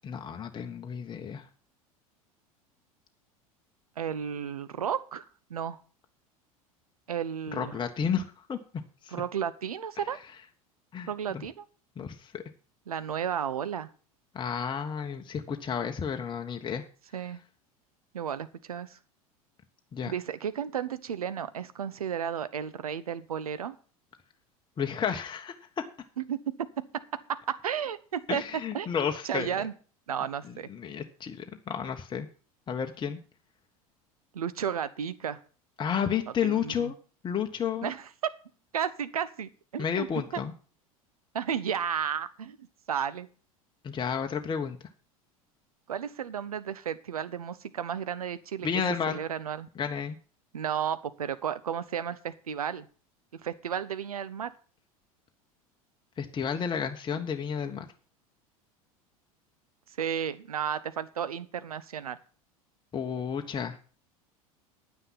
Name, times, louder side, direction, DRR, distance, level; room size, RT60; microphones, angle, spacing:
voice 1, 0.0-1.5 7.5-8.6 9.0-9.2 10.9-11.4 12.0-12.4 14.3-16.8 19.9-20.1 24.8-25.8 28.3-29.6 30.5-32.3 32.7-33.2 35.8-36.9 37.2-37.9 39.8-40.5 43.8-44.8 48.6-49.2 49.7-50.2 56.2-57.9 62.9-63.8, left 7 dB, 25° left, 5 dB, 1.3 m, -32 dB
voice 2, 4.0-5.8 7.1-7.8 9.1-10.2 11.1-11.6 12.9-13.9 17.1-17.4 18.1-19.0 20.1-23.8 26.2-26.4 27.3-28.4 28.7-28.9 29.2-29.7 30.1-30.7 34.3-35.4 36.4-36.9 37.8-38.1 38.7-40.1 40.3-40.4 41.3-42.6 42.9-43.3 45.9-48.7 49.1-49.7 50.5-52.9 53.4-54.5 60.0-62.2, right 8 dB, 80° right, 14 dB, 1.0 m, -33 dB
9.8 x 9.7 x 5.8 m, 0.39 s
figure-of-eight pair, 80°, 19 cm